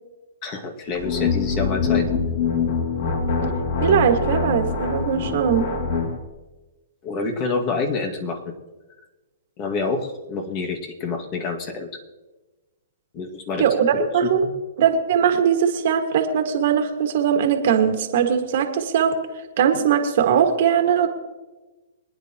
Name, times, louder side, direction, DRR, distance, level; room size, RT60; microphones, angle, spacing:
voice 1, 0.4-2.1 7.0-8.5 9.6-11.9 13.1-13.6 13.9-14.5, left 4 dB, 35° left, 2 dB, 2.1 m, -27 dB
sound 1, 0.9-6.2, left 5 dB, 55° left, 2.6 m, -24 dB
voice 2, 3.8-5.6 13.6-14.4 14.8-19.1 19.6-21.1, right 8 dB, 55° right, 5 dB, 1.9 m, -20 dB
24.0 x 9.9 x 3.0 m, 1.2 s
hypercardioid pair, 135°, 0 cm